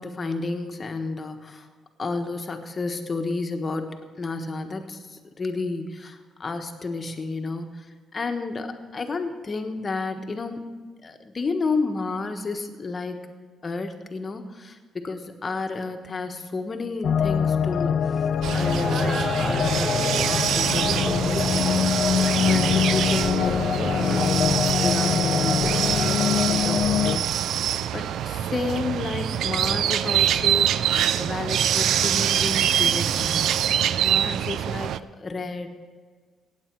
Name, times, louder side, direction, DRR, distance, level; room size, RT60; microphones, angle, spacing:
voice 1, 0.0-1.7 2.0-7.9 8.1-10.6 11.0-13.2 13.6-22.1 22.4-27.2 27.9-33.6 34.0-35.7, left 3 dB, 35° left, 6 dB, 1.3 m, -31 dB
sound 1, 17.0-27.2, left 8 dB, 60° left, 0.3 m, -24 dB
sound 2, 18.4-35.0, right 10 dB, 75° right, 0.4 m, -25 dB
Laughter, 18.5-26.0, right 2 dB, 40° right, 1.5 m, -36 dB
16.5 x 8.5 x 4.7 m, 1.5 s
cardioid pair, 90°, 0 cm